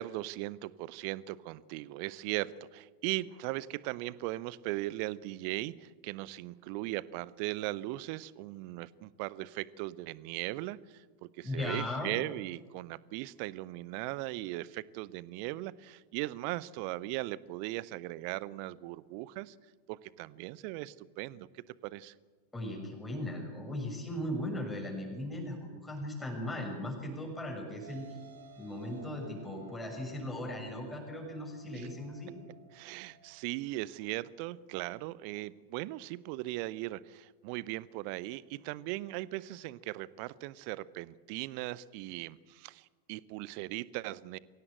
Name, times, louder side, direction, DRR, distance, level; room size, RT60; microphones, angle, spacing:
voice 1, 0.0-19.5 19.9-21.5 21.8-22.1 31.7-31.9 32.7-44.4, right 18 dB, 45° right, 20 dB, 0.7 m, -38 dB
voice 2, 11.4-12.1 22.5-28.1 28.6-32.3, left 1 dB, 10° left, 1 dB, 6.5 m, -38 dB
sound 1, 27.8-33.4, right 5 dB, 65° right, 2.4 m, -56 dB
23.0 x 17.0 x 8.0 m, 1.4 s
figure-of-eight pair, 90°, 0 cm